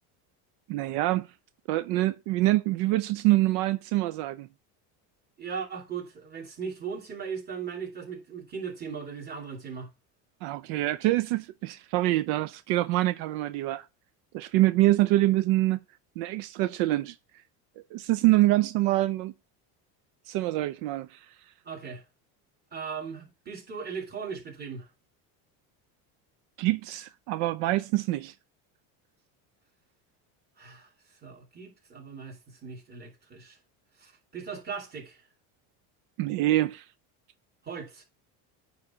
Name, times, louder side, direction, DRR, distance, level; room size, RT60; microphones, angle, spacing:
voice 1, 0.7-1.3 1.7-4.5 10.4-13.9 14.3-15.8 16.2-17.1 17.9-19.3 20.3-21.3 26.6-28.3 36.2-36.9, right 16 dB, 75° right, 0.6 m, -25 dB
voice 2, 5.4-9.9 21.6-22.0 22.7-24.9 30.6-30.9 31.2-33.6 34.0-35.2 37.6-38.0, right 6 dB, 25° right, 2.8 m, -38 dB
9.5 x 3.3 x 4.9 m
cardioid pair, 150°, 41 cm